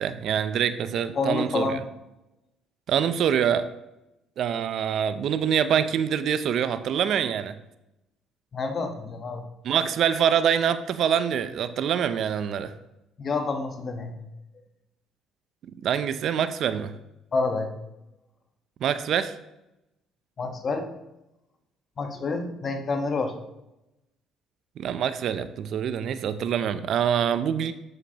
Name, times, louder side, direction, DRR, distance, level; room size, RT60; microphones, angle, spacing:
voice 1, 0.0-1.7 2.9-3.6 4.4-7.6 9.6-12.7 15.8-17.0 18.8-19.3 24.8-27.7, right 8 dB, 65° right, 12 dB, 0.5 m, -25 dB
voice 2, 1.1-1.9 8.5-9.4 13.2-14.1 17.3-17.7 20.4-20.9 22.0-23.4, left 3 dB, 45° left, 5 dB, 1.1 m, -28 dB
7.9 x 7.3 x 2.9 m, 0.91 s
supercardioid pair, 80°, 0 cm